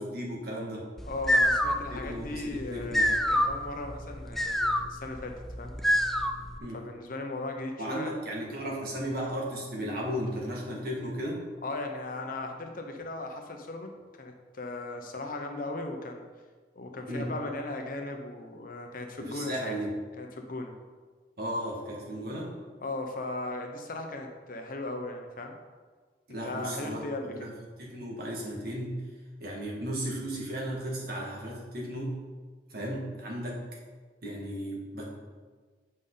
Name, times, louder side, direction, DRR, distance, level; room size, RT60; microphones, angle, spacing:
voice 1, 0.0-0.9 1.9-3.0 6.6-6.8 7.8-11.4 17.1-17.3 19.2-19.9 21.4-22.5 26.3-27.5 27.8-28.9 29.4-32.2 32.7-33.6 34.2-35.2, equal, 60° right, -3 dB, 1.8 m, -35 dB
voice 2, 1.0-5.7 6.7-8.1 11.6-16.2 16.8-19.8 20.2-20.8 22.8-25.6 26.3-27.5, left 2 dB, 55° left, 4 dB, 0.8 m, -37 dB
sound 1, 1.0-6.6, equal, ahead, 0.3 m, -27 dB
8.1 x 5.3 x 3.9 m, 1.5 s
head